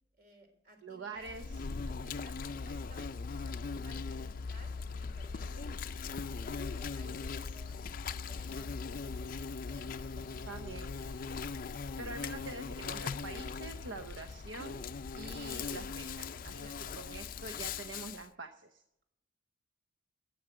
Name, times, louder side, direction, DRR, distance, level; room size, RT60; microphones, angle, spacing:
voice 1, 0.2-1.5 1.8-5.8 6.4-10.7 11.0-11.4 16.5-17.2, right 1 dB, 50° right, 4 dB, 3.4 m, -58 dB
voice 2, 0.8-1.6 10.5-10.9 12.0-14.8 15.2-16.5 17.0-18.8, right 3 dB, 70° right, 8 dB, 0.8 m, -45 dB
Insect, 1.2-18.3, left 5 dB, 45° left, 0.4 m, -40 dB
13.5 x 8.5 x 7.7 m, 0.85 s
head